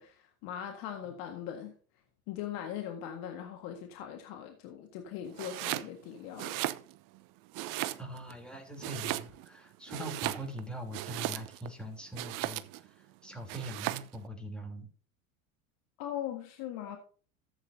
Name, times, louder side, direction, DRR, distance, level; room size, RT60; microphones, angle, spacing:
voice 1, 0.0-1.7 2.3-6.6 16.0-17.0, left 10 dB, 60° left, 1.8 m, -40 dB
Domestic sounds home sounds, 5.3-5.9 6.3-7.2 7.5-8.3 8.8-9.6 9.9-11.7 12.1-12.9 13.5-14.2, right 17 dB, 55° right, 0.8 m, -36 dB
voice 2, 8.0-12.9 13.2-14.9, right 1 dB, ahead, 3.4 m, -42 dB
14.0 x 7.9 x 2.8 m
hypercardioid pair, 90°, 40 cm